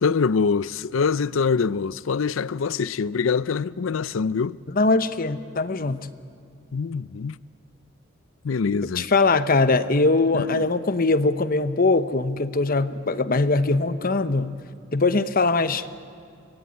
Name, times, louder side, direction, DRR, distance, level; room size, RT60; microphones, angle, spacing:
voice 1, 0.0-4.6 6.7-7.4 8.4-9.1 10.4-10.6, left 5 dB, 80° left, 0.5 m, -24 dB
voice 2, 4.7-6.1 9.0-14.5 14.9-15.8, left 3 dB, 45° left, 0.9 m, -21 dB
25.0 x 19.5 x 9.3 m
head